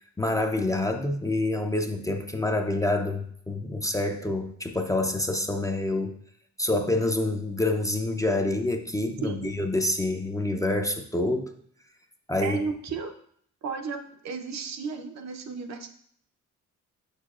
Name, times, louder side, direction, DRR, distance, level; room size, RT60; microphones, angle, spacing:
voice 1, 0.2-6.1 6.6-11.5 12.3-12.6, left 2 dB, 10° left, 4 dB, 0.5 m, -27 dB
voice 2, 9.2-9.5 12.4-13.1 13.6-15.9, right 5 dB, 65° right, 5 dB, 0.8 m, -33 dB
6.5 x 6.3 x 2.4 m, 0.64 s
cardioid pair, 90°, 30 cm